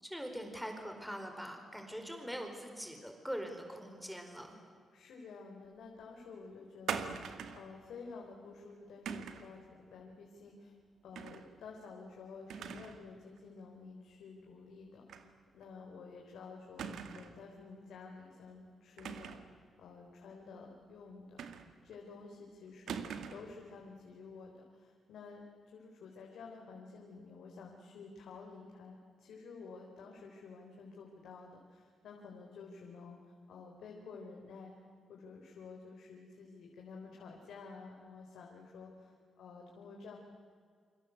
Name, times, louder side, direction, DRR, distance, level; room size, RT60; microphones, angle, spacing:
voice 1, 0.0-4.5, equal, ahead, 4 dB, 4.5 m, -43 dB
voice 2, 4.9-10.7 11.0-19.4 19.8-21.4 21.8-33.2 33.5-34.7 35.1-40.2, left 4 dB, 85° left, 0 dB, 4.2 m, -51 dB
sound 1, 6.9-7.7 9.1-9.5 11.1-11.5 11.8-11.9 12.5-13.0 13.4-13.5 15.1-15.3 15.6-15.7 16.8-17.4 19.0-19.5 21.4-21.9 22.9-23.5, right 7 dB, 80° right, 2.1 m, -42 dB
29.0 x 25.5 x 8.1 m, 2.1 s
cardioid pair, 120°, 0 cm